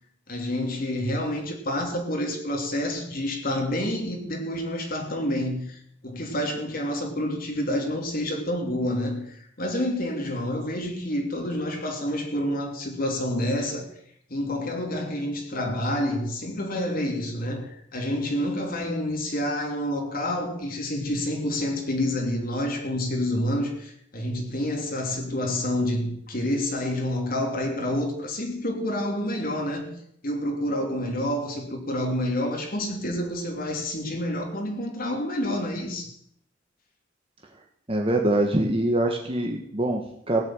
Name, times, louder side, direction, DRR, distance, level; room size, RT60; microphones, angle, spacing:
voice 1, 0.3-13.9 14.3-29.9 30.2-36.1, left 1 dB, 50° left, 2.9 m, -28 dB
voice 2, 37.9-40.4, right 1 dB, 30° right, 1.5 m, -24 dB
17.5 x 7.5 x 9.0 m
head